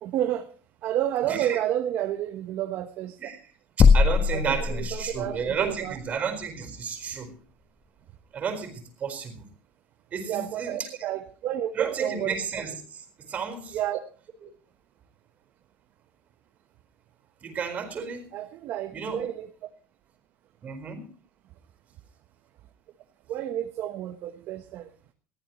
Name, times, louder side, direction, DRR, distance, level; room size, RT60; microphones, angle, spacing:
voice 1, 0.0-0.5 0.8-3.3 4.3-6.0 10.3-12.3 13.7-14.0 18.3-19.5 23.3-24.9, right 12 dB, 55° right, 7 dB, 1.1 m, -30 dB
voice 2, 1.3-1.6 3.2-3.4 3.8-7.4 8.3-9.5 10.1-10.9 11.7-13.8 14.4-14.5 17.4-18.3 18.9-19.3 20.6-21.1, right 6 dB, 35° right, 6 dB, 4.5 m, -32 dB
sound 1, 3.8-5.4, left 5 dB, 30° left, 1.0 m, -20 dB
21.0 x 14.5 x 3.1 m, 0.41 s
supercardioid pair, 120°, 4 cm